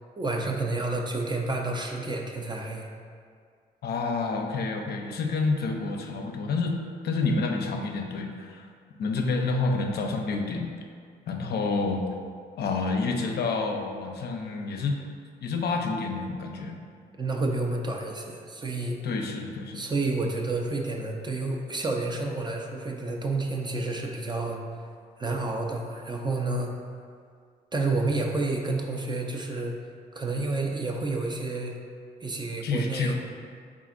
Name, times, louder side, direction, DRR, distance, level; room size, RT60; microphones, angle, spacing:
voice 1, 0.2-2.9 17.2-19.0 19.7-24.6 25.2-26.7 27.7-29.7 30.1-31.8 32.2-33.1, right 2 dB, 25° right, 1 dB, 0.5 m, -29 dB
voice 2, 3.8-6.8 7.0-8.7 9.0-10.7 11.3-12.0 12.6-15.0 15.4-16.8 19.0-19.9 32.6-33.1, left 3 dB, 60° left, 2 dB, 0.5 m, -28 dB
4.1 x 3.6 x 2.5 m, 2.1 s
supercardioid pair, 55°, 19 cm